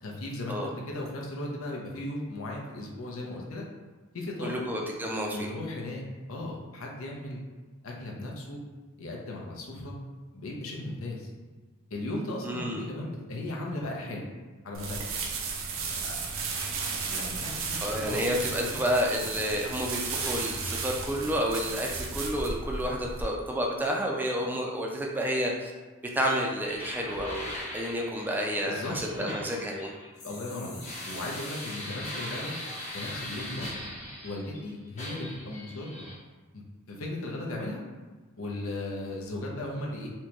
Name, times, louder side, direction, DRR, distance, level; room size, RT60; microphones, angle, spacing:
voice 1, 0.0-3.6 4.1-4.6 5.3-6.0 6.3-7.4 7.8-8.6 9.0-10.0 10.3-11.3 11.9-14.3 14.6-15.0 16.0-16.2 17.1-17.8 18.1-18.8 28.7-29.4 30.2-32.5 32.9-33.7 34.2-36.1 36.5-37.8 38.4-40.1, left 1 dB, 75° left, -1 dB, 0.7 m, -36 dB
voice 2, 4.4-5.5 12.4-12.9 17.8-25.7 26.1-29.9, equal, 10° right, -1 dB, 0.4 m, -30 dB
sound 1, 14.7-23.2, right 4 dB, 70° right, 0.5 m, -34 dB
sound 2, 26.6-34.6 35.0-36.2, left 1 dB, 35° left, 0.7 m, -40 dB
4.3 x 2.2 x 2.9 m, 1.4 s
head